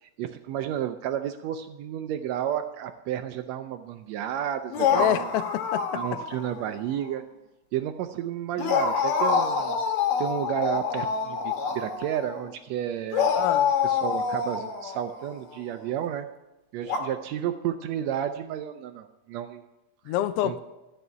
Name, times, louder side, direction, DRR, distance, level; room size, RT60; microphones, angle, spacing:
voice 1, 0.0-5.3 5.9-7.2 7.7-9.8 10.2-13.3 13.8-16.3 16.7-19.6 20.1-20.2 20.4-20.6, right 10 dB, 80° right, 8 dB, 1.6 m, -32 dB
sound 1, 4.7-6.6 6.9-7.1 8.6-12.4 13.1-15.6 16.8-17.0, left 6 dB, 70° left, 2.7 m, -26 dB
voice 2, 4.9-6.0 13.3-13.7 20.1-20.6, left 12 dB, 90° left, 12 dB, 1.3 m, -27 dB
13.5 x 5.5 x 9.1 m, 1.0 s
omnidirectional pair, 3.4 m